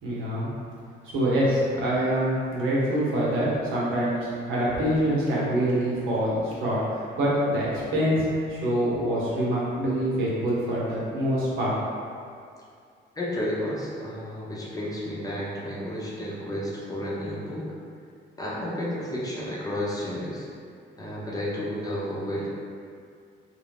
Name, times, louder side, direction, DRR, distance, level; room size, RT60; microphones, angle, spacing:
voice 1, 0.0-0.5 1.0-11.7, right 1 dB, 85° right, -7 dB, 0.8 m, -25 dB
voice 2, 13.2-17.7 18.4-20.5 21.0-22.5, left 1 dB, 20° left, -6 dB, 0.7 m, -32 dB
2.5 x 2.1 x 3.4 m, 2.3 s
cardioid pair, 90°, 20 cm